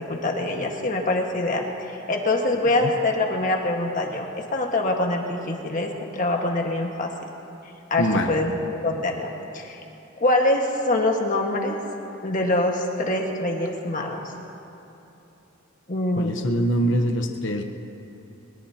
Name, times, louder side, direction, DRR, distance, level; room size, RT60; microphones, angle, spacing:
voice 1, 0.0-1.7 2.1-7.1 7.9-8.6 8.8-9.3 9.5-9.8 10.2-11.8 12.2-14.2 15.9-16.3, left 2 dB, 40° left, 1 dB, 1.6 m, -24 dB
voice 2, 8.0-8.4 16.2-17.6, equal, 60° left, 4 dB, 1.0 m, -24 dB
22.0 x 20.5 x 2.9 m, 3.0 s
head